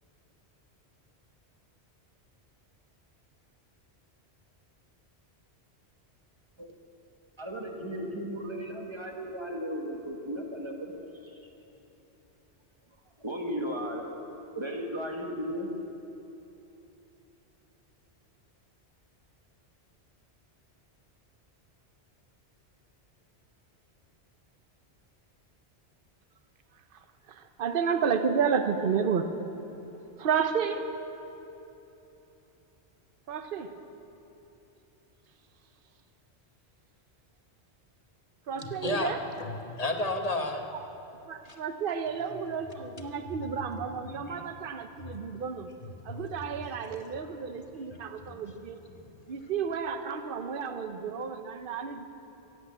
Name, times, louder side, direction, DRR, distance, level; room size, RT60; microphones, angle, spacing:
voice 1, 7.4-10.9 11.2-11.5 13.2-14.1 14.5-15.7, equal, 25° right, 1 dB, 1.4 m, -35 dB
voice 2, 27.3-29.3 30.2-30.9 33.3-33.7 38.5-39.2 40.7-40.8 41.3-45.7 46.0-48.8 49.3-52.0, right 6 dB, 55° right, 8 dB, 0.9 m, -31 dB
voice 3, 38.5-40.6 41.4-41.6 42.3-42.6 43.0-43.5 44.1-44.5 45.0-45.4 45.8-46.2 47.9-48.1 48.9-49.0, left 2 dB, 35° left, 4 dB, 1.1 m, -34 dB
16.0 x 8.2 x 8.5 m, 3.0 s
omnidirectional pair, 1.1 m